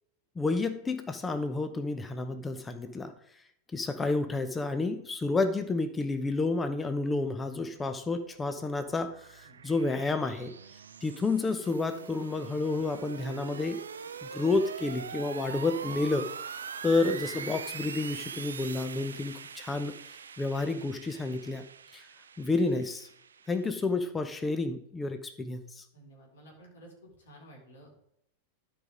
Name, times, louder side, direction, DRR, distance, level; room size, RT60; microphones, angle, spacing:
voice 1, 0.4-3.1 3.7-10.5 11.0-13.8 14.2-16.3 16.8-19.9 20.4-21.6 21.9-22.1 22.4-23.1 23.5-25.8, left 3 dB, 15° left, 9 dB, 0.8 m, -30 dB
sound 1, 8.0-23.8, right 6 dB, 70° right, 0.5 m, -43 dB
voice 2, 25.9-26.9 27.2-27.9, right 1 dB, 60° left, -2 dB, 4.2 m, -53 dB
12.0 x 5.2 x 4.9 m, 0.74 s
figure-of-eight pair, 90°, 0 cm